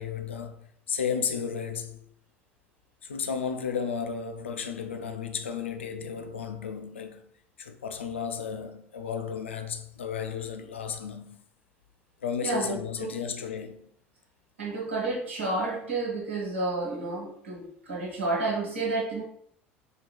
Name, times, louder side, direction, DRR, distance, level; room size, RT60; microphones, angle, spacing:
voice 1, 0.0-2.1 3.0-7.2 7.6-11.4 12.2-13.9, left 7 dB, 85° left, 0.3 m, -33 dB
voice 2, 12.4-13.1 14.6-19.2, right 3 dB, 90° right, 1.2 m, -30 dB
4.0 x 3.0 x 2.2 m
figure-of-eight pair, 70°, 6 cm